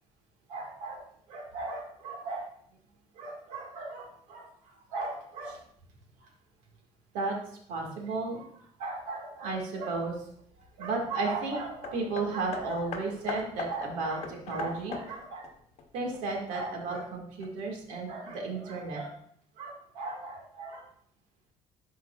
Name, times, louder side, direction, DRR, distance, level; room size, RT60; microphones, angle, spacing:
voice 1, 0.5-2.4 3.2-4.5 4.9-5.6 7.1-7.4 7.7-8.5 8.8-10.1 10.8-15.5 15.9-19.1 19.6-20.8, right 3 dB, 85° right, 0 dB, 1.8 m, -34 dB
Hammer, 11.8-16.6 17.4-17.5, left 4 dB, 60° left, 1.0 m, -41 dB
11.5 x 4.6 x 2.3 m, 0.64 s
cardioid pair, 115°, 12 cm